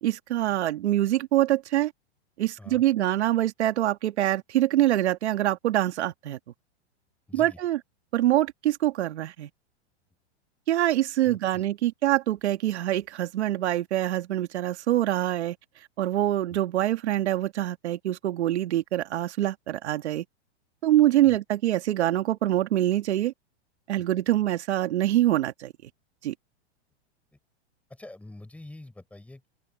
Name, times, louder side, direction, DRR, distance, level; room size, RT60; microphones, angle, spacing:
voice 1, 0.0-1.9 2.4-6.4 7.3-7.8 8.1-9.5 10.7-15.6 16.0-20.2 20.8-23.3 23.9-25.7 26.2-26.3, right 13 dB, 75° right, 1.9 m, -25 dB
voice 2, 7.3-7.6 11.2-11.6 21.2-21.4 24.0-24.1 27.9-29.5, left 2 dB, 5° left, 5.8 m, -46 dB
supercardioid pair, 145°, 34 cm